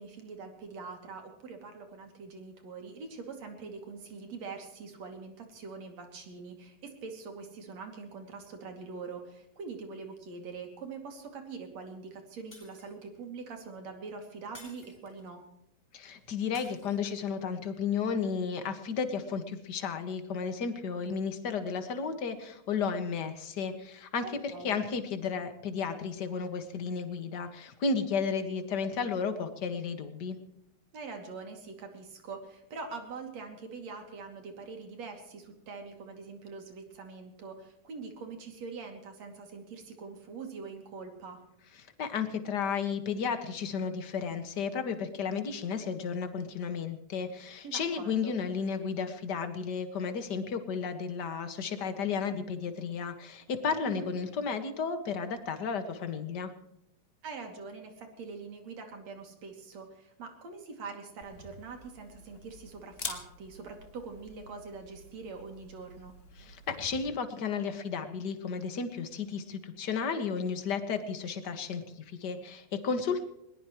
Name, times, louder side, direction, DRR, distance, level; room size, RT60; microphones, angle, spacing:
voice 1, 0.0-15.4 24.2-24.8 30.9-41.4 47.6-48.4 53.8-54.1 57.2-66.1, right 4 dB, 60° right, 4 dB, 3.7 m, -44 dB
Shatter, 12.5-13.2 14.5-15.4 16.5-17.3, equal, 5° left, 3.8 m, -54 dB
voice 2, 15.9-30.4 42.0-56.5 66.4-71.8 72.2-73.2, left 5 dB, 40° left, 8 dB, 1.8 m, -33 dB
Camera, 61.2-67.0, left 3 dB, 25° left, 1.7 m, -46 dB
21.0 x 20.5 x 3.1 m, 0.81 s
omnidirectional pair, 3.4 m